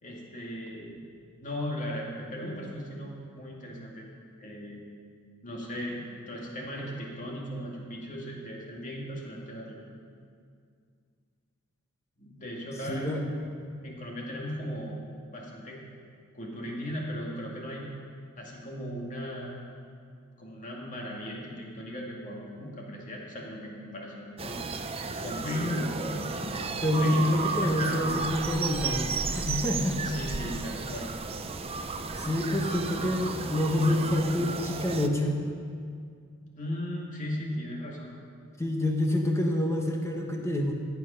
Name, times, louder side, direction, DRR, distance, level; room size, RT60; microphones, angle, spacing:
voice 1, 0.0-1.0 1.4-4.1 4.4-4.8 5.4-6.0 6.3-9.8 12.2-13.2 13.4-13.5 13.8-15.0 15.3-15.8 16.3-17.9 18.4-19.5 20.4-24.6 24.9-28.2 30.0-31.1 32.5-32.6 36.6-38.1, equal, 40° left, -2 dB, 2.1 m, -38 dB
voice 2, 12.9-13.2 25.4-25.9 26.8-30.0 32.1-35.4 38.6-40.7, left 1 dB, 15° left, 1 dB, 1.0 m, -27 dB
sound 1, 24.4-35.1, right 4 dB, 30° right, 0.6 m, -33 dB
15.0 x 8.3 x 5.6 m, 2.2 s
head